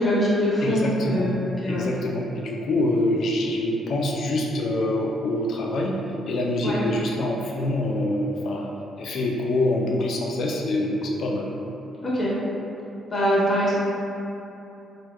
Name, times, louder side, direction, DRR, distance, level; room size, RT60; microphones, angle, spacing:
voice 1, 0.0-1.9 6.6-6.8 12.0-12.3 13.1-13.7, equal, 30° left, -7 dB, 1.0 m, -23 dB
voice 2, 0.6-1.3 1.7-6.0 6.2-8.7 9.0-11.5, left 1 dB, 65° left, -1 dB, 0.4 m, -25 dB
4.4 x 2.2 x 2.3 m, 2.9 s
cardioid pair, 90°, 0 cm